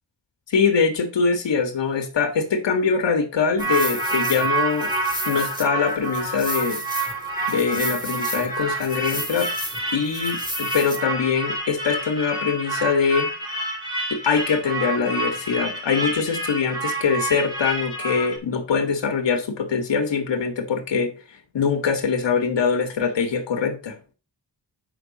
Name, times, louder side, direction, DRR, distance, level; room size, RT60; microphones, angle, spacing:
voice 1, 0.5-4.9 5.3-6.8 7.5-9.5 9.9-13.3 14.1-21.1 21.5-24.0, left 5 dB, 85° left, 1.8 m, -23 dB
sound 1, 3.6-18.4, right 2 dB, 10° right, 3.3 m, -28 dB
8.7 x 6.3 x 4.1 m
wide cardioid pair, 125°, 43 cm